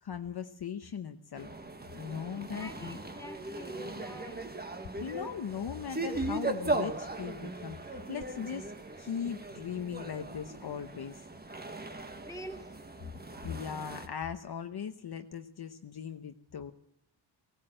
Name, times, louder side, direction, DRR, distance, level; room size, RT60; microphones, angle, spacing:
voice 1, 0.0-1.5 1.9-3.0 5.0-8.7 9.0-11.3 13.4-16.7, left 7 dB, 55° left, 1.0 m, -39 dB
sound 1, 1.4-14.1, right 2 dB, 20° right, 1.5 m, -38 dB
voice 2, 2.3-4.5 12.3-12.7, left 1 dB, 5° left, 3.0 m, -46 dB
19.0 x 18.0 x 7.7 m
wide cardioid pair, 155°, 47 cm